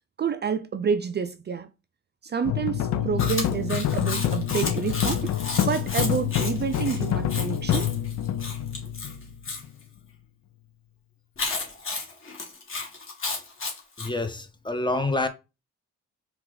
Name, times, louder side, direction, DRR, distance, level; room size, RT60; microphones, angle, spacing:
voice 1, 0.2-1.7 2.2-7.9, right 6 dB, 35° right, 0.4 m, -29 dB
sound 1, 2.5-9.7, left 10 dB, 65° left, 0.6 m, -27 dB
Chewing mastication, 3.2-9.6 11.4-14.1, left 3 dB, 45° left, 1.6 m, -33 dB
voice 2, 14.0-15.3, left 2 dB, 15° left, 0.7 m, -27 dB
4.6 x 2.5 x 3.9 m
cardioid pair, 90°, 30 cm